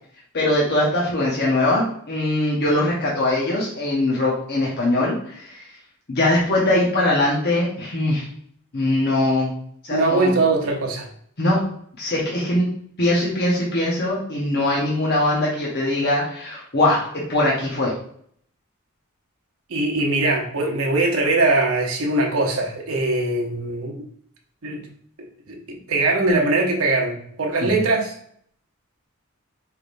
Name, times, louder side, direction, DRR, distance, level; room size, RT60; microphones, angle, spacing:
voice 1, 0.3-5.5 6.1-8.3 8.7-9.5 9.8-10.3 11.4-11.6 12.0-12.7 13.0-17.0 17.3-17.9 27.6-27.8, left 1 dB, 50° left, -5 dB, 1.0 m, -21 dB
voice 2, 9.9-11.1 19.7-24.1 24.6-24.8 25.5-28.1, right 2 dB, 85° right, 0 dB, 0.9 m, -21 dB
4.9 x 3.3 x 2.6 m, 0.63 s
head